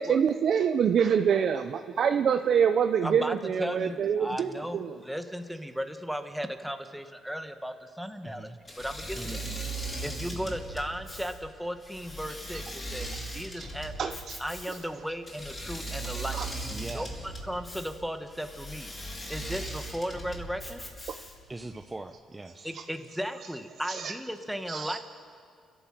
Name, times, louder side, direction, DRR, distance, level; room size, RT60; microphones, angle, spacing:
voice 1, 0.0-4.9 13.6-13.7 14.0-14.4 16.3-16.5 22.7-22.8 23.9-24.1 24.7-25.0, right 7 dB, 60° right, 7 dB, 0.7 m, -26 dB
voice 2, 3.0-9.4 10.0-16.4 16.9-18.9 19.3-20.8 22.6-25.0, equal, ahead, 6 dB, 1.5 m, -36 dB
voice 3, 8.2-8.6 9.1-9.7 10.3-10.6 16.7-17.3 21.5-22.7, right 2 dB, 20° right, 6 dB, 0.9 m, -42 dB
Engine / Mechanisms, 8.7-21.5, right 2 dB, 25° left, 4.3 m, -39 dB
29.5 x 12.0 x 7.7 m, 2.1 s
cardioid pair, 90°, 0 cm